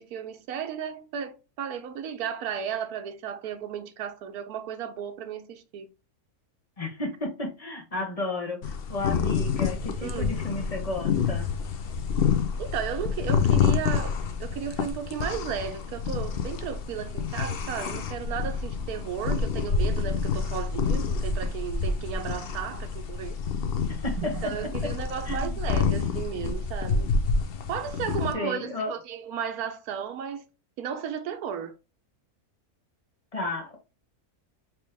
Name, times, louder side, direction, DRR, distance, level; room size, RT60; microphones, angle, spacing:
voice 1, 0.0-5.9 10.0-10.3 12.6-23.4 24.2-27.1 27.7-30.4 30.8-31.7, right 8 dB, 80° right, 1.2 m, -34 dB
voice 2, 6.8-11.5 23.9-24.5 25.2-25.6 28.3-28.9 33.3-33.8, left 2 dB, 25° left, 1.0 m, -33 dB
sound 1, 8.6-28.3, left 5 dB, 55° left, 0.6 m, -28 dB
4.3 x 3.0 x 3.3 m
omnidirectional pair, 1.6 m